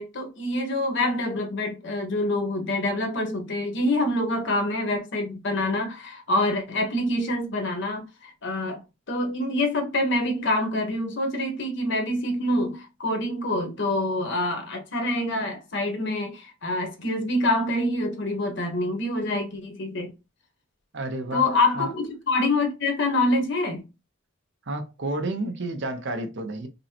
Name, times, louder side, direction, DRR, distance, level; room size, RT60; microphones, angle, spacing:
voice 1, 0.0-8.8 9.1-20.1 21.3-23.8, left 2 dB, 65° left, 1.1 m, -26 dB
voice 2, 20.9-21.4 21.7-21.9 24.7-26.7, right 2 dB, 60° right, 0.7 m, -30 dB
5.2 x 2.1 x 2.8 m
head